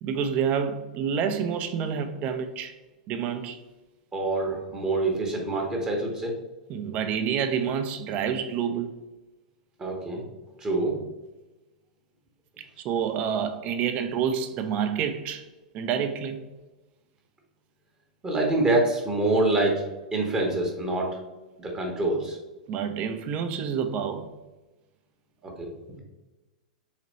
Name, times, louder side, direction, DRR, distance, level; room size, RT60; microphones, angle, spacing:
voice 1, 0.0-2.7 3.1-3.6 6.7-9.0 12.6-15.4 15.7-16.4 22.7-24.3, right 7 dB, 35° right, 0.5 m, -28 dB
voice 2, 4.1-6.3 9.8-10.2 10.6-11.0 18.2-19.8 20.1-21.2 21.6-22.4 25.4-25.7, right 2 dB, 15° right, 0.9 m, -26 dB
4.1 x 3.0 x 4.0 m
figure-of-eight pair, 100°, 4 cm